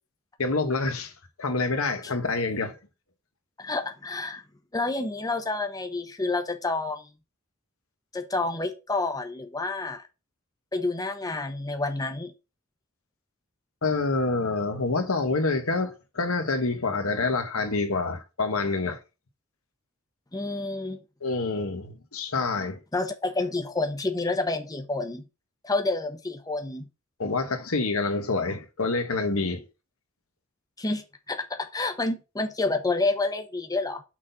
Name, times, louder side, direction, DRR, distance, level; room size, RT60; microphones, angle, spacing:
voice 1, 0.4-1.1 1.4-2.8 13.8-19.0 21.2-22.8 27.2-29.6, left 3 dB, 80° left, 1.3 m, -27 dB
voice 2, 3.6-4.4 4.7-7.1 8.1-10.0 10.7-12.3 20.3-21.0 22.9-25.2 25.6-26.9 30.8-34.0, left 3 dB, 15° left, 0.9 m, -29 dB
6.2 x 4.0 x 5.7 m
head